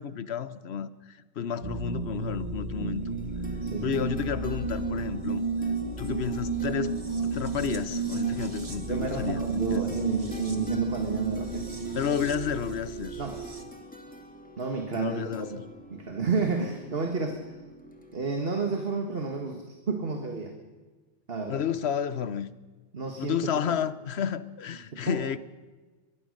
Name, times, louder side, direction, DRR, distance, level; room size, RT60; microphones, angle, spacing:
voice 1, 0.0-3.2 3.8-5.4 6.0-9.4 9.7-9.8 11.9-13.2 14.9-15.5 21.5-22.5 23.2-25.4, left 8 dB, 75° left, 15 dB, 1.1 m, -31 dB
sound 1, 1.6-13.6, right 4 dB, 30° right, 1.8 m, -32 dB
sound 2, 3.0-18.2, equal, 5° left, 2.6 m, -47 dB
voice 2, 3.6-3.9 8.8-11.7 13.2-13.4 14.6-15.6 15.9-17.6 18.1-20.5 21.3-21.6 22.9-23.4 24.9-25.2, right 4 dB, 60° right, 4 dB, 1.9 m, -31 dB
23.0 x 20.0 x 6.6 m, 1.3 s
omnidirectional pair, 1.1 m